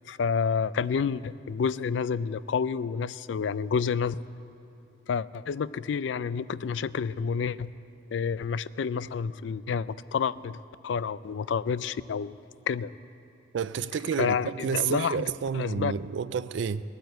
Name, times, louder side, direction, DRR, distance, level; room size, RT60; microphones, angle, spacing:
voice 1, 0.1-4.2 5.1-7.7 8.1-10.6 10.8-12.3 12.7-12.9 14.2-15.2 15.5-15.9, left 6 dB, 70° left, 0.4 m, -29 dB
voice 2, 13.5-16.8, right 6 dB, 70° right, 0.4 m, -30 dB
19.0 x 9.1 x 8.0 m
head